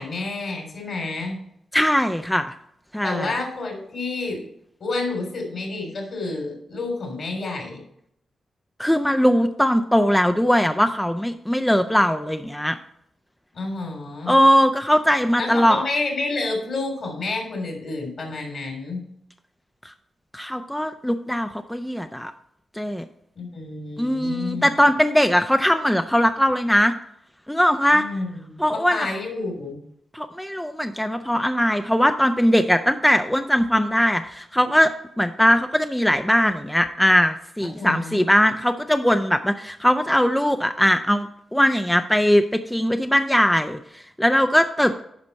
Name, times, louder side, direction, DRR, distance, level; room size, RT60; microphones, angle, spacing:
voice 1, 0.0-1.4 3.0-4.4 4.8-7.8 13.5-14.4 15.4-19.0 23.3-24.7 27.9-29.8 37.7-38.2, left 3 dB, 65° left, 2 dB, 3.3 m, -29 dB
voice 2, 1.7-2.5 2.9-3.3 8.8-12.8 14.3-15.8 20.3-22.3 22.7-23.0 24.0-26.9 27.5-28.0 28.6-29.1 30.1-34.9 35.2-45.0, equal, 5° left, 7 dB, 0.6 m, -20 dB
9.8 x 5.2 x 4.2 m, 0.73 s
supercardioid pair, 45°, 0 cm